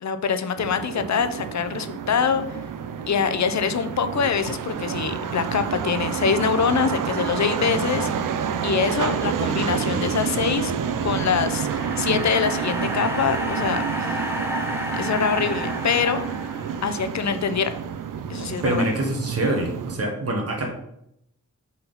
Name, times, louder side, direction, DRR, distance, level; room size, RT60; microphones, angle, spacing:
voice 1, 0.0-2.6 3.1-8.1 8.6-10.7 11.0-11.7 12.0-13.8 14.1-14.2 14.9-16.3 16.8-17.8 18.3-18.8, left 6 dB, 60° left, 10 dB, 0.6 m, -24 dB
sound 1, 0.6-20.0, right 7 dB, 75° right, 0.5 m, -28 dB
sound 2, 10.7-17.1, left 1 dB, 10° right, 1.0 m, -32 dB
voice 2, 18.6-20.7, right 1 dB, 50° right, 0 dB, 1.3 m, -25 dB
5.7 x 4.2 x 4.0 m, 0.78 s
wide cardioid pair, 90°, 32 cm